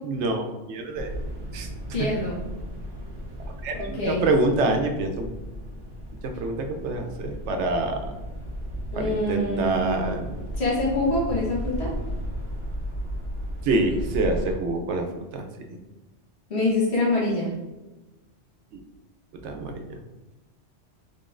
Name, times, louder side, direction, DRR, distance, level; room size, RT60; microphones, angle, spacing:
voice 1, 0.0-1.1 1.5-1.7 3.6-5.3 6.4-8.0 9.0-10.3 13.6-15.1 15.3-15.5 19.4-20.0, right 2 dB, 80° right, 4 dB, 0.9 m, -26 dB
sound 1, 0.9-14.5, equal, 25° right, 1.0 m, -35 dB
voice 2, 1.9-2.4 3.7-4.3 8.9-10.2 10.5-11.9 16.5-17.5, left 2 dB, 70° left, -6 dB, 1.6 m, -25 dB
3.8 x 3.6 x 2.5 m, 1.1 s
omnidirectional pair, 1.2 m